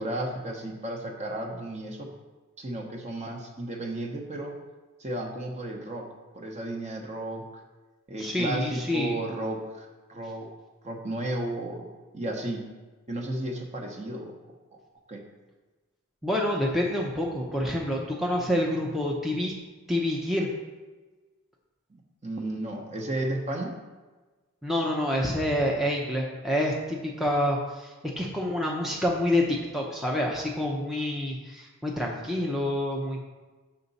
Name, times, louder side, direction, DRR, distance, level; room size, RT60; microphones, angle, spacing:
voice 1, 0.0-2.1 2.6-4.5 5.0-7.6 8.1-10.5 10.8-11.9 12.1-12.6 13.1-14.3 14.7-14.8 15.1-15.2 21.9-23.7, right 1 dB, 30° right, 1 dB, 0.9 m, -33 dB
voice 2, 8.2-9.2 16.2-19.5 19.9-20.5 24.6-33.2, left 1 dB, ahead, -2 dB, 0.6 m, -27 dB
6.6 x 5.7 x 4.1 m, 1.3 s
head